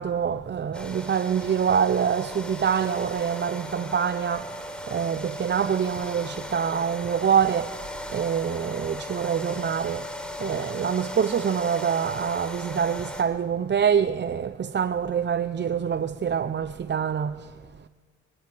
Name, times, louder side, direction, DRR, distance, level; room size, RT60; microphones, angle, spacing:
voice 1, 0.0-17.9, right 7 dB, 35° right, 0.7 m, -26 dB
sound 1, 0.7-13.2, left 1 dB, 5° left, 3.8 m, -37 dB
25.0 x 16.5 x 8.4 m
cardioid pair, 90°, 30 cm